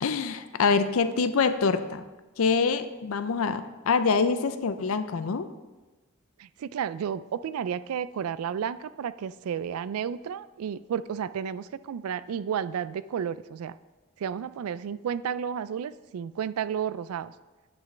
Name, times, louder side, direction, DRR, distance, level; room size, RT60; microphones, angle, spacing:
voice 1, 0.0-2.0 2.4-5.5, left 5 dB, 80° left, 11 dB, 0.5 m, -25 dB
voice 2, 6.4-13.8 14.2-17.3, right 8 dB, 85° right, 16 dB, 0.3 m, -32 dB
9.4 x 8.2 x 3.3 m, 1.2 s
head